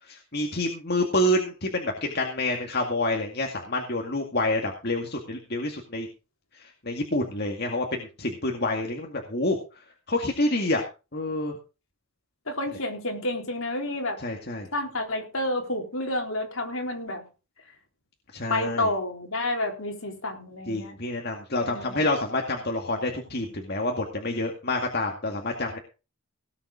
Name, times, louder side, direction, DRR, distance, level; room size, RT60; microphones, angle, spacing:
voice 1, 0.1-6.1 6.6-9.6 10.1-10.8 11.1-11.5 14.2-14.7 18.3-18.9 20.7-25.8, left 1 dB, 45° left, 1 dB, 2.1 m, -28 dB
voice 2, 12.5-14.2 14.7-17.2 18.5-20.9 21.6-22.0, left 1 dB, 65° left, 2 dB, 4.0 m, -30 dB
18.0 x 7.1 x 5.0 m, 0.32 s
head